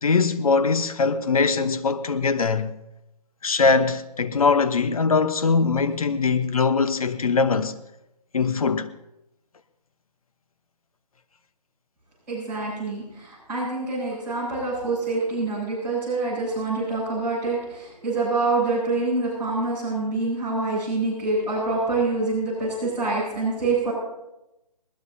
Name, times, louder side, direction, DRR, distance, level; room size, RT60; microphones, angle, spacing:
voice 1, 0.0-2.8 3.4-7.7 8.3-8.9, left 4 dB, 60° left, 1.1 m, -21 dB
voice 2, 12.3-23.9, right 3 dB, 10° right, 7.6 m, -26 dB
20.5 x 20.0 x 2.8 m
hypercardioid pair, 165°, 21 cm